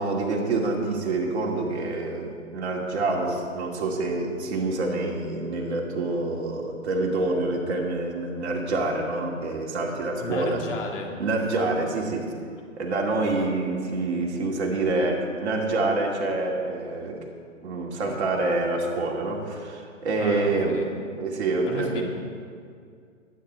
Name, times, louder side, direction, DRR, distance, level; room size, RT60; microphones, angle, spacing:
voice 1, 0.0-10.6 11.2-12.3 12.8-17.2 17.6-20.8 21.2-22.0, right 2 dB, 55° right, 0 dB, 2.5 m, -27 dB
voice 2, 10.2-11.1 20.2-20.9 21.6-22.0, left 3 dB, 65° left, 1 dB, 2.4 m, -34 dB
20.5 x 9.6 x 3.5 m, 2.2 s
hypercardioid pair, 130°, 40 cm